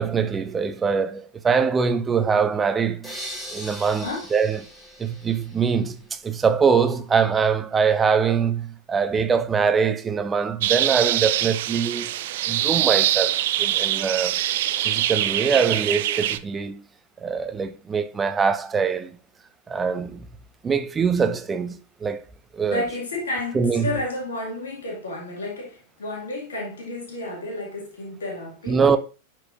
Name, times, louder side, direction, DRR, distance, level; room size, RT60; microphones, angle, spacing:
voice 1, 0.0-3.1 3.5-4.6 5.0-12.1 12.5-14.4 14.8-16.8 17.2-19.2 19.7-20.2 20.6-22.2 22.5-22.8 23.5-23.9 28.7-29.0, right 6 dB, 20° right, 0.7 m, -23 dB
sound 1, 3.0-6.0, equal, 5° left, 2.0 m, -39 dB
sound 2, 10.6-16.4, right 13 dB, 55° right, 0.4 m, -24 dB
voice 2, 22.7-28.8, left 2 dB, 65° left, 2.3 m, -31 dB
11.0 x 4.6 x 2.6 m
figure-of-eight pair, 90°, 0 cm